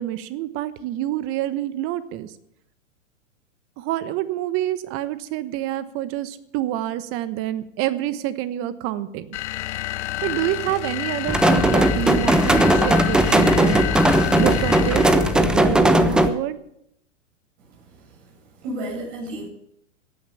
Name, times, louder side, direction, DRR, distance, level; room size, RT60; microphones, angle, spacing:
voice 1, 0.0-2.3 3.8-9.3 10.2-13.9 14.4-16.6, right 13 dB, 35° right, 14 dB, 1.1 m, -27 dB
sound 1, 9.3-15.5, left 15 dB, 65° left, 0.7 m, -29 dB
sound 2, 11.3-16.3, right 1 dB, ahead, 0.4 m, -18 dB
voice 2, 17.6-19.5, right 1 dB, 60° right, -2 dB, 7.8 m, -34 dB
15.5 x 9.3 x 6.8 m, 0.76 s
hypercardioid pair, 130°, 37 cm